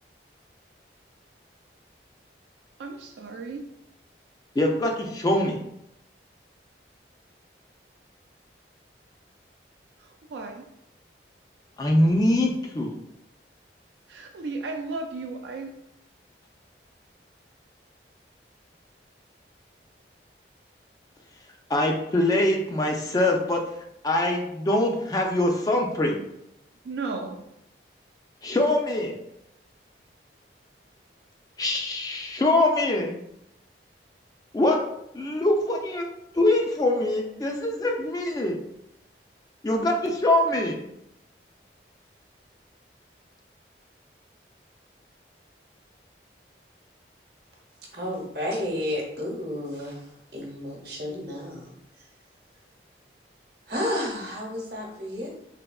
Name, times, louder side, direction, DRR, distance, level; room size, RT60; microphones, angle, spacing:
voice 1, 2.8-3.6 10.0-10.7 14.1-15.7 26.8-27.4, right 3 dB, 80° right, 3 dB, 0.3 m, -34 dB
voice 2, 4.6-5.6 11.8-13.0 21.7-23.6 24.0-26.2 28.4-29.2 31.6-33.1 34.5-34.8 35.1-36.1 36.3-38.6 39.6-40.8, left 1 dB, 20° left, 1 dB, 0.3 m, -23 dB
voice 3, 47.9-52.0 53.7-55.3, left 1 dB, 60° right, -1 dB, 0.9 m, -32 dB
3.4 x 2.7 x 2.3 m, 0.80 s
head